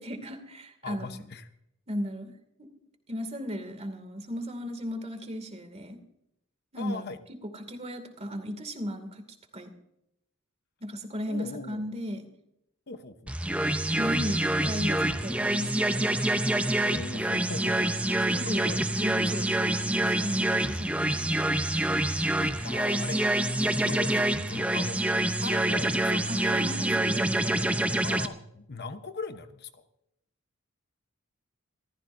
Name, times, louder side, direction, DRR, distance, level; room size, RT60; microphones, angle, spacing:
voice 1, 0.0-1.2 1.9-2.3 2.6-2.7 3.1-6.0 6.7-7.1 7.5-9.2 9.5-9.7 10.8-12.2 14.0-16.1 18.2-21.4 22.6-22.7 26.3-27.9, equal, 30° right, 7 dB, 2.3 m, -36 dB
voice 2, 0.8-1.5 6.8-7.2 11.3-11.8 12.9-13.4 16.8-18.0 18.5-18.8 22.4-23.2 23.5-25.0 25.4-26.6 28.0-29.8, left 3 dB, 50° left, 9 dB, 0.9 m, -40 dB
sound 1, 13.3-28.3, right 1 dB, 5° right, 0.7 m, -26 dB
26.5 x 14.5 x 2.6 m, 0.80 s
head